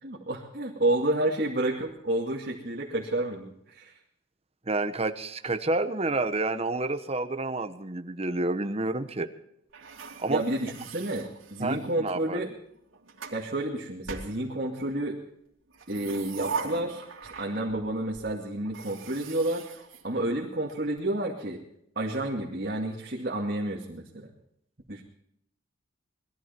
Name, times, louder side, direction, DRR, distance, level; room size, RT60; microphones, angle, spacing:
voice 1, 0.0-3.9 10.3-12.5 13.3-15.2 15.9-17.0 17.4-19.6 20.0-21.6 22.0-24.3 24.9-25.0, right 1 dB, 45° right, -3 dB, 2.3 m, -30 dB
voice 2, 4.7-9.3 10.2-10.4 11.6-12.4, right 2 dB, 30° right, 9 dB, 1.1 m, -29 dB
sound 1, 9.7-12.0 12.7-13.4 14.0-15.0 15.7-17.8 18.1-18.2 18.6-20.7, right 5 dB, 75° right, 3.1 m, -40 dB
20.5 x 14.0 x 4.5 m, 0.74 s
head